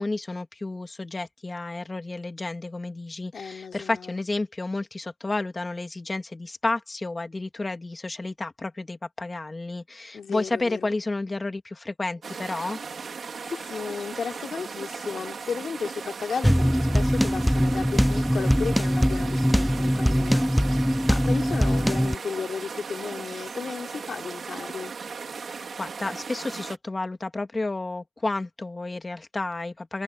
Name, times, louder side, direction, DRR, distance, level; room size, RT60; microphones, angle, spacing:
voice 1, 0.0-12.8 25.4-30.0, left 2 dB, 25° left, 2.2 m, -31 dB
voice 2, 3.3-4.2 10.1-10.9 13.5-25.0, left 6 dB, 65° left, 3.5 m, -34 dB
sound 1, 12.2-26.8, right 5 dB, 60° right, 4.5 m, -37 dB
sound 2, 16.4-22.1, equal, ahead, 0.5 m, -22 dB
wide cardioid pair, 110°, 0 cm